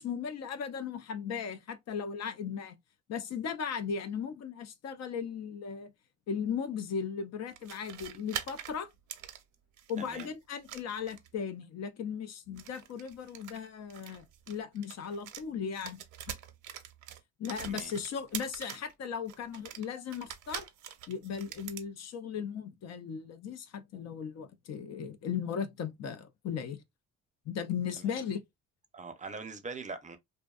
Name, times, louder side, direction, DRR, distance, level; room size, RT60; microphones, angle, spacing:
voice 1, 0.0-2.8 3.1-5.9 6.3-8.9 9.9-16.0 17.4-20.7 21.1-26.8 27.5-28.4, left 7 dB, 60° left, 0.5 m, -37 dB
sound 1, 7.5-10.3 10.6-11.4 12.5-15.5 15.7-18.9 19.3-21.9, right 11 dB, 80° right, 0.6 m, -44 dB
voice 2, 10.0-10.3 17.6-17.9 28.0-28.1 28.9-30.2, right 4 dB, 25° right, 0.5 m, -42 dB
2.6 x 2.1 x 2.3 m
cardioid pair, 90°, 30 cm